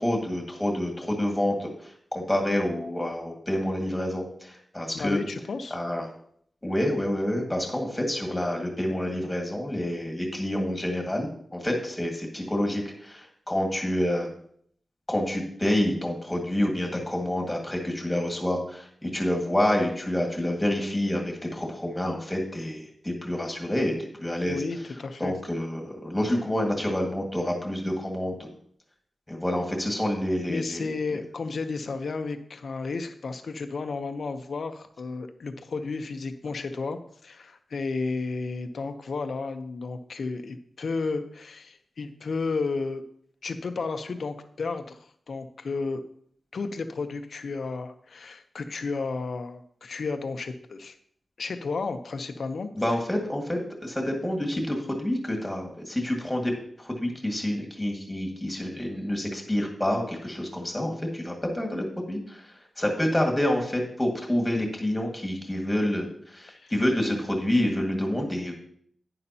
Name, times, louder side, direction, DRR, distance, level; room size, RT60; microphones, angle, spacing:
voice 1, 0.0-5.2 5.7-6.1 6.6-14.3 15.1-24.6 25.2-28.5 29.3-31.2 52.8-56.5 56.8-68.5, left 1 dB, 10° left, 1 dB, 1.9 m, -28 dB
voice 2, 4.9-5.8 24.5-25.3 30.5-43.0 43.4-46.0 46.5-51.0 51.4-52.7 66.5-66.7, left 4 dB, 60° left, 8 dB, 0.8 m, -32 dB
11.0 x 9.8 x 2.9 m, 0.64 s
wide cardioid pair, 175°, 0 cm